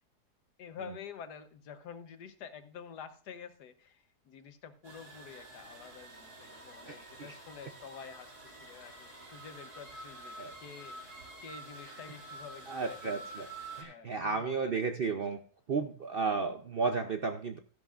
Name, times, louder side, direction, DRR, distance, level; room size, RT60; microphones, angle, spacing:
voice 1, 0.6-8.3 8.6-11.0 11.4-13.3 13.7-14.8, left 7 dB, 90° left, 10 dB, 1.5 m, -48 dB
sound 1, 4.8-13.8, right 2 dB, 75° right, 3.1 m, -48 dB
voice 2, 6.8-7.3 10.4-10.5 11.8-11.9 12.7-13.5 13.8-15.4 15.7-17.6, right 4 dB, 55° right, 6 dB, 0.6 m, -33 dB
14.0 x 11.0 x 2.5 m, 0.39 s
omnidirectional pair, 1.7 m